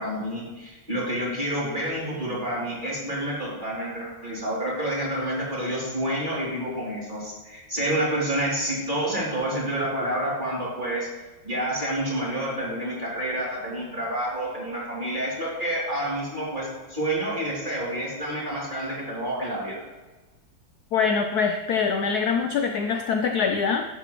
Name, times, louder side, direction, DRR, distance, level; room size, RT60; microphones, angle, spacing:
voice 1, 0.0-11.1 11.4-19.8, right 1 dB, 25° right, -7 dB, 3.3 m, -28 dB
voice 2, 20.9-23.9, left 5 dB, 70° left, 5 dB, 1.0 m, -24 dB
11.0 x 8.2 x 3.1 m, 1.2 s
omnidirectional pair, 2.1 m